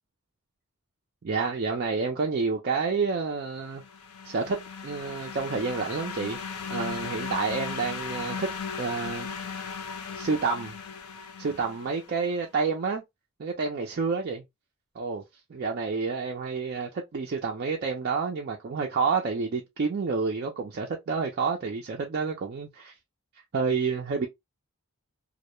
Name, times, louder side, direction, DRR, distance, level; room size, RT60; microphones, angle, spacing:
voice 1, 1.2-3.8 4.2-4.6 4.8-6.4 6.7-8.5 8.8-9.3 10.1-10.8 11.4-13.0 13.4-14.4 15.0-15.2 15.5-22.9 23.5-24.3, right 4 dB, 45° right, 0.4 m, -29 dB
sound 1, 3.6-12.3, left 5 dB, 85° left, 0.5 m, -37 dB
2.1 x 2.0 x 2.9 m
head